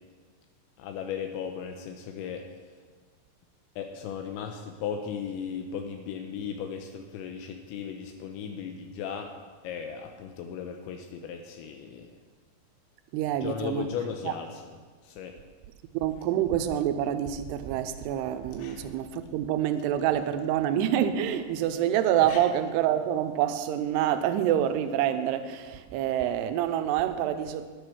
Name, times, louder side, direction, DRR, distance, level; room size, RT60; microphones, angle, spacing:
voice 1, 0.8-2.4 3.8-9.3 9.6-12.1 13.4-14.6 15.0-15.3 18.6-18.9 22.2-22.4, left 7 dB, 85° left, 3.0 m, -36 dB
voice 2, 13.1-13.9 14.2-14.3 15.9-27.7, right 10 dB, 80° right, 2.5 m, -27 dB
10.0 x 10.0 x 6.2 m
omnidirectional pair, 5.2 m